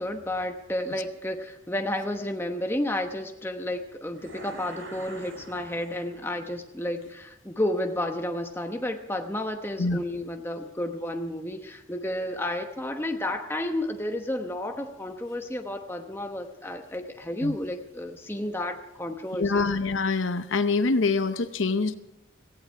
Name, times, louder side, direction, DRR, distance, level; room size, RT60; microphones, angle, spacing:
voice 1, 0.0-19.7, left 1 dB, 10° left, 4 dB, 1.0 m, -31 dB
sound 1, 4.2-6.5, right 2 dB, 75° right, 2.5 m, -45 dB
voice 2, 19.4-21.9, left 3 dB, 80° left, 11 dB, 0.8 m, -25 dB
17.5 x 15.5 x 4.6 m, 0.90 s
head